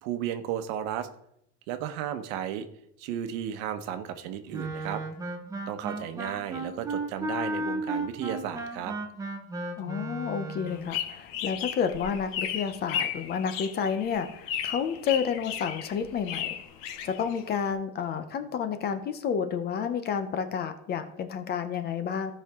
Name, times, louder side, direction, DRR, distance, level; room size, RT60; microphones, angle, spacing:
voice 1, 0.0-1.1 1.7-2.7 3.0-5.0 5.7-8.9, right 10 dB, 90° right, 9 dB, 1.1 m, -34 dB
Wind instrument woodwind instrument, 4.5-10.9, right 2 dB, 10° right, 0.7 m, -34 dB
voice 2, 9.8-16.5 17.0-22.3, left 7 dB, 25° left, 9 dB, 0.6 m, -30 dB
sound 1, 10.7-17.7, left 9 dB, 60° left, 0.9 m, -35 dB
15.0 x 5.6 x 3.6 m, 0.74 s
cardioid pair, 175°, 38 cm